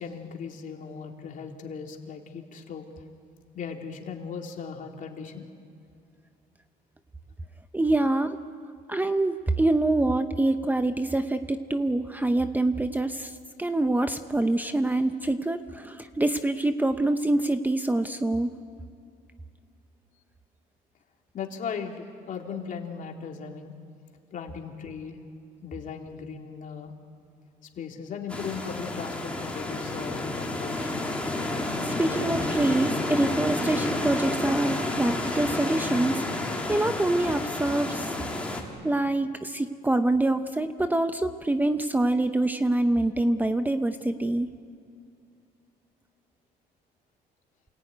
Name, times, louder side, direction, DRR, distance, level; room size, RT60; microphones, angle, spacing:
voice 1, 0.0-2.9 3.5-5.5 21.3-23.7 24.3-25.2 25.6-26.9 27.8-31.0, left 6 dB, 50° left, 2 dB, 3.1 m, -37 dB
voice 2, 7.7-8.4 8.9-13.3 13.6-18.5 31.8-36.2 36.7-38.1 38.8-44.5, right 2 dB, 10° right, 9 dB, 0.9 m, -25 dB
sound 1, 28.3-38.6, left 2 dB, 5° left, 3.7 m, -30 dB
28.5 x 19.0 x 9.4 m, 2.4 s
cardioid pair, 110°, 17 cm